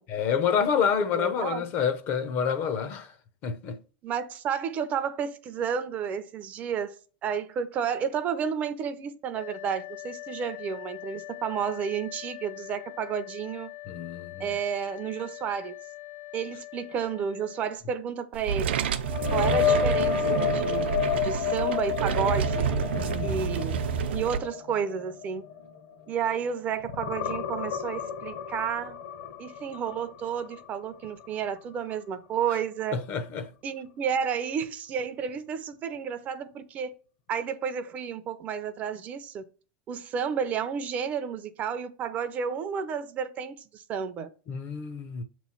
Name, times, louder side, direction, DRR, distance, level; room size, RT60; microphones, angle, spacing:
voice 1, 0.1-3.1 3.4-3.8 13.9-14.5 22.7-23.4 32.9-33.5 44.5-45.2, left 7 dB, 35° left, 0.6 m, -28 dB
voice 2, 1.1-1.7 4.0-13.7 14.4-15.7 16.3-18.8 19.3-20.9 21.2-22.7 23.2-23.8 24.1-25.4 26.1-29.0 29.4-33.0 33.6-36.9 37.3-39.4 39.9-44.3, right 7 dB, 25° right, 0.5 m, -31 dB
sound 1, 9.3-17.8, left 21 dB, 85° left, 1.1 m, -43 dB
sound 2, 18.3-24.4, right 7 dB, 90° right, 0.6 m, -28 dB
sound 3, 19.0-26.5 26.8-30.7 31.0-31.3 34.6-34.7, left 9 dB, 60° left, 1.1 m, -30 dB
6.8 x 3.1 x 5.5 m
supercardioid pair, 155°, 6 cm